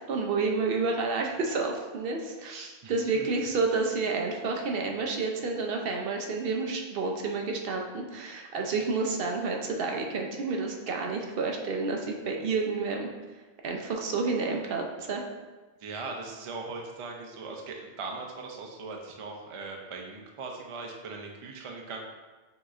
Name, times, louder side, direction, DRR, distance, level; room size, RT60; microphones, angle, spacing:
voice 1, 0.1-13.1 13.6-15.2, right 4 dB, 65° right, 1 dB, 0.8 m, -30 dB
voice 2, 2.8-3.3 15.8-22.0, right 3 dB, 45° right, 1 dB, 0.4 m, -39 dB
6.3 x 3.0 x 2.4 m, 1.2 s
omnidirectional pair, 1.1 m